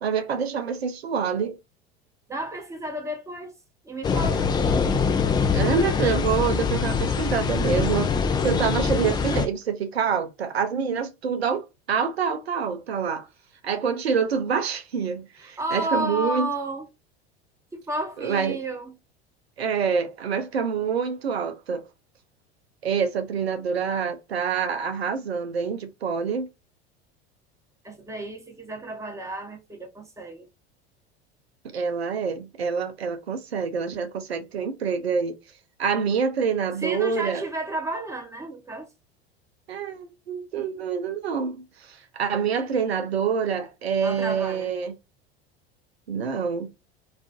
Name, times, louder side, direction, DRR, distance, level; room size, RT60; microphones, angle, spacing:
voice 1, 0.0-1.6 5.5-8.1 8.4-13.3 13.6-16.5 18.2-18.6 19.6-21.8 22.8-26.5 31.6-35.4 35.8-37.4 39.7-44.9 46.1-46.7, right 6 dB, 90° right, 0.5 m, -26 dB
voice 2, 2.3-3.5 3.8-4.5 15.4-16.9 17.9-18.9 27.8-30.5 36.8-38.9 44.0-44.7, right 1 dB, 10° right, 0.9 m, -32 dB
sound 1, 4.0-9.5, left 5 dB, 15° left, 0.3 m, -23 dB
2.4 x 2.3 x 2.3 m
hypercardioid pair, 80°, 31 cm